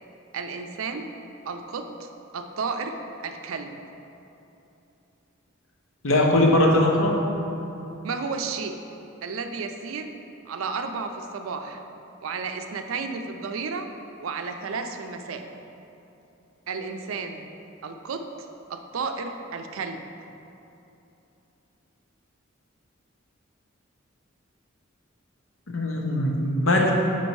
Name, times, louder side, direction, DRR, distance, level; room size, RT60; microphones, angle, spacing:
voice 1, 0.3-1.0 1.4-2.1 2.3-3.0 3.2-3.7 8.0-8.7 9.2-10.1 10.5-11.8 12.2-13.9 14.2-15.4 16.7-17.4 17.8-18.2 18.7-20.0, right 4 dB, 85° right, 6 dB, 0.4 m, -32 dB
voice 2, 6.0-7.1 25.7-26.9, left 1 dB, 85° left, 0 dB, 0.8 m, -20 dB
5.3 x 4.4 x 4.6 m, 2.9 s
head